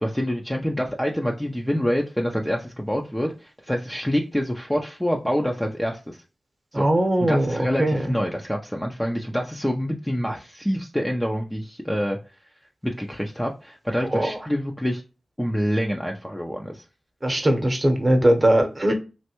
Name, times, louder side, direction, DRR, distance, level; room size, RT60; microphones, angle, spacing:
voice 1, 0.0-6.2 6.7-6.9 7.2-12.2 12.8-15.0 15.4-16.8, equal, 10° left, 0.5 m, -26 dB
voice 2, 6.7-8.1 14.0-14.4 17.2-19.0, right 1 dB, 30° right, 0.9 m, -20 dB
3.2 x 2.5 x 2.9 m
cardioid pair, 40°, 0 cm